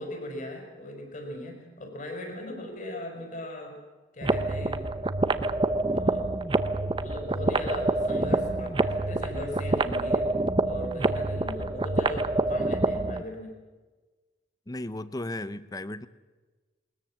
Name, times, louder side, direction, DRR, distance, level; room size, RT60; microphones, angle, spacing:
voice 1, 0.0-3.8 4.1-4.8 5.9-6.3 7.0-10.3 10.6-13.6, left 1 dB, 40° left, 3 dB, 5.3 m, -38 dB
sound 1, 4.2-13.2, right 2 dB, 25° right, 0.8 m, -27 dB
voice 2, 14.7-16.1, left 1 dB, 20° left, 15 dB, 0.7 m, -35 dB
21.0 x 20.5 x 7.5 m, 1.3 s
head